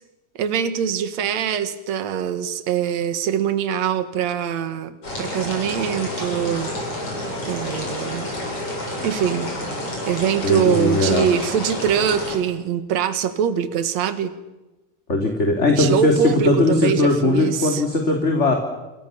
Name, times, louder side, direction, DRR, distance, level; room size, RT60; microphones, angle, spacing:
voice 1, 0.4-6.7 7.4-8.3 9.0-9.5 10.1-14.3 15.8-17.8, right 8 dB, 55° right, 11 dB, 2.7 m, -23 dB
sound 1, 5.0-12.4, left 1 dB, 40° left, 8.0 m, -29 dB
voice 2, 10.4-11.3 15.1-18.5, left 2 dB, 20° left, 2 dB, 2.8 m, -19 dB
28.0 x 27.0 x 7.1 m, 1.1 s
omnidirectional pair, 4.2 m